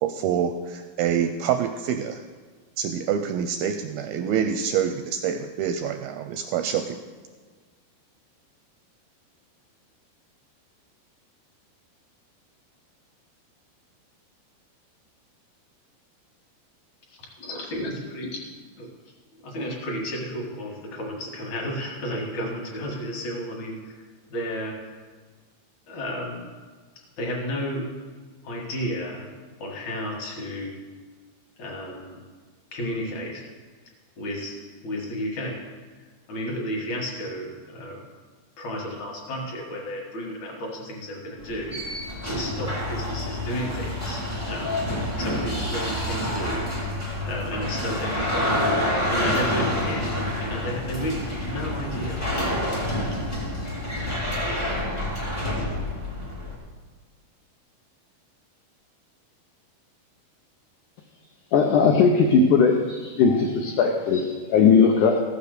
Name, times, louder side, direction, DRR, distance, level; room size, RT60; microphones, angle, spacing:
voice 1, 0.0-2.2 2.8-7.0, right 8 dB, 85° right, 7 dB, 2.2 m, -26 dB
voice 2, 17.1-18.3 18.8-18.9 19.4-24.0 24.3-25.0 25.9-26.4 27.2-27.9 28.4-29.3 29.6-30.8 31.6-32.2 32.7-33.4 34.2-34.6 34.8-35.6 36.3-38.1 38.6-46.7 47.3-52.7 53.4-53.5, equal, 55° left, -1 dB, 2.7 m, -32 dB
sound 1, 41.4-56.5, left 1 dB, 10° left, 0.8 m, -28 dB
voice 3, 61.5-65.2, left 5 dB, 90° left, 2 dB, 1.7 m, -19 dB
14.5 x 6.8 x 6.6 m, 1.4 s
omnidirectional pair, 4.7 m